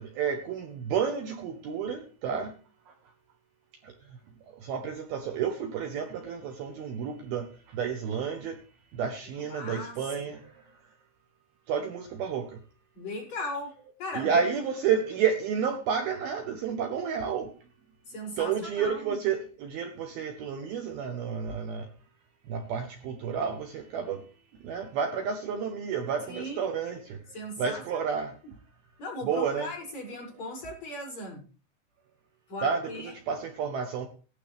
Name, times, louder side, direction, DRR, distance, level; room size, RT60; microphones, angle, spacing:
voice 1, 0.0-2.5 2.9-3.0 3.8-4.0 4.5-8.6 8.9-10.7 11.7-12.6 14.1-17.5 18.4-21.9 22.5-24.2 24.6-27.2 27.6-28.3 29.2-29.7 32.6-34.1, right 7 dB, 70° right, 5 dB, 2.6 m, -31 dB
voice 2, 9.5-10.3 12.9-14.4 18.1-19.2 26.3-26.6 27.3-27.8 29.0-31.4 32.5-33.1, left 1 dB, 35° left, -6 dB, 7.5 m, -38 dB
18.0 x 12.0 x 3.4 m, 0.36 s
omnidirectional pair, 5.2 m